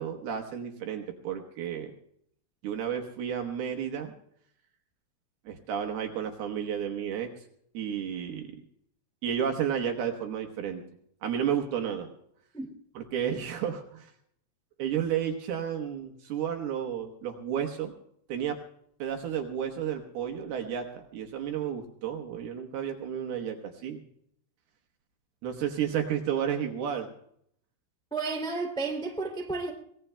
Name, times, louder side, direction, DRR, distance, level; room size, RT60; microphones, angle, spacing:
voice 1, 0.0-1.9 2.6-4.1 5.5-7.3 7.7-8.6 9.2-10.8 11.2-12.1 13.0-14.1 14.8-17.9 18.3-18.6 19.0-24.0 25.4-27.1, right 8 dB, 70° right, 2.7 m, -32 dB
voice 2, 28.1-29.7, right 3 dB, 5° left, 0.7 m, -32 dB
24.5 x 19.5 x 2.2 m
omnidirectional pair, 5.4 m